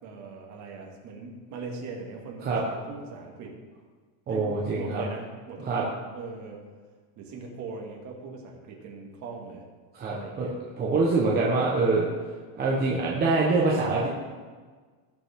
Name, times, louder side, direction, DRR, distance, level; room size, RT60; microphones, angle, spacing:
voice 1, 0.0-3.5 4.3-6.6 7.2-9.6 10.1-10.6, right 4 dB, 35° right, -1 dB, 2.1 m, -40 dB
voice 2, 4.3-5.0 5.6-5.8 9.9-10.5 10.8-12.1 12.6-14.1, right 3 dB, 20° right, -4 dB, 1.1 m, -24 dB
18.5 x 7.2 x 3.7 m, 1.5 s
cardioid pair, 170°, 49 cm